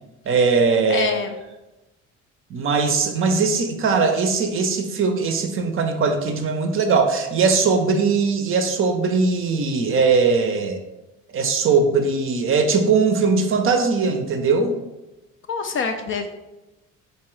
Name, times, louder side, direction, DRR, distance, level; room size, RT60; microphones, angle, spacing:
voice 1, 0.3-1.1 2.5-10.8 11.3-14.8, right 4 dB, 35° right, 6 dB, 0.6 m, -20 dB
voice 2, 0.9-1.4 15.5-16.3, left 5 dB, 35° left, 6 dB, 0.4 m, -25 dB
3.6 x 2.8 x 3.1 m, 1.0 s
hypercardioid pair, 60°, 37 cm